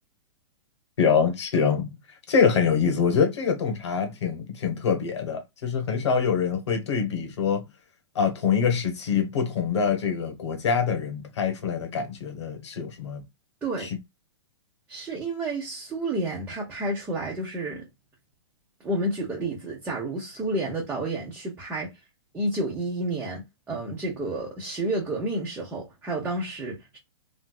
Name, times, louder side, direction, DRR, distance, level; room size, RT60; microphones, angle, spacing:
voice 1, 1.0-2.0 2.3-7.6 8.1-13.2 13.8-14.0, left 6 dB, 75° left, 1.3 m, -25 dB
voice 2, 14.9-17.8 18.8-21.9 22.3-27.0, right 2 dB, 10° right, 0.9 m, -30 dB
3.2 x 2.7 x 2.3 m
hypercardioid pair, 150°, 15 cm